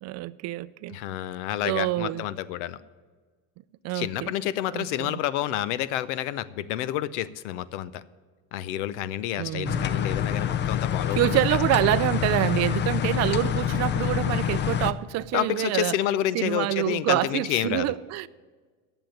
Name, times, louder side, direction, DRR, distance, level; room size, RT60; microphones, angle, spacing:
voice 1, 0.0-1.0 1.6-2.2 3.8-4.3 4.7-5.2 9.4-9.9 11.1-16.0 16.3-18.3, right 17 dB, 50° right, 0.4 m, -26 dB
voice 2, 0.9-2.8 3.9-8.0 8.5-11.6 15.3-17.9, left 12 dB, 85° left, 0.7 m, -29 dB
sound 1, 9.6-14.9, left 9 dB, 30° left, 0.5 m, -26 dB
10.5 x 7.0 x 9.0 m
supercardioid pair, 115°, 35 cm